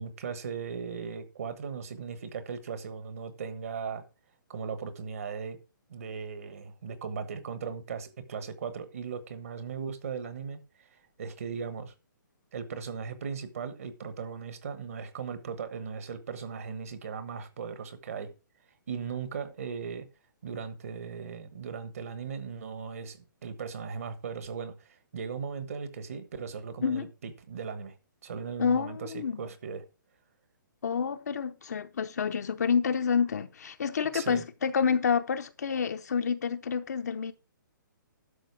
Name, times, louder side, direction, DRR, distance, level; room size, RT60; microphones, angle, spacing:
voice 1, 0.0-4.0 4.5-5.6 5.9-11.9 12.5-18.3 18.9-20.1 20.4-28.0 28.2-29.8 34.1-34.4, right 6 dB, 45° right, 1.3 m, -38 dB
voice 2, 28.6-29.4 30.8-37.3, left 6 dB, 50° left, 0.7 m, -28 dB
11.5 x 6.2 x 4.7 m
hypercardioid pair, 180°, 11 cm